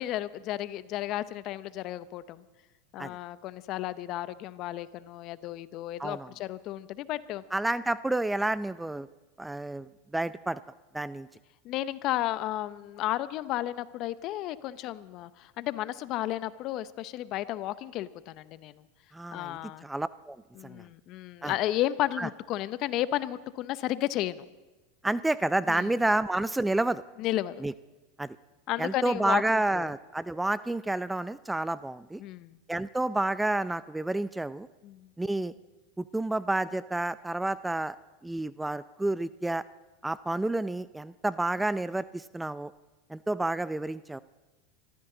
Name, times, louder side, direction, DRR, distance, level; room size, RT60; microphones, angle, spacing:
voice 1, 0.0-2.4 2.9-7.4 11.6-18.8 19.3-19.8 20.6-24.4 25.7-25.9 27.2-27.6 28.7-29.9 32.2-32.6 34.8-35.1, left 14 dB, 50° left, 16 dB, 0.7 m, -33 dB
voice 2, 6.0-6.3 7.5-9.1 9.4-10.6 10.9-11.3 19.1-20.4 20.6-20.8 21.4-21.5 22.2-22.3 25.0-27.0 27.6-27.7 28.2-28.4 28.8-32.2 32.7-34.7 35.2-35.5 36.0-38.0 38.2-39.6 40.0-42.7 43.1-44.2, right 2 dB, 5° right, 16 dB, 0.4 m, -30 dB
25.5 x 14.5 x 3.9 m, 1.1 s
hypercardioid pair, 105°, 0 cm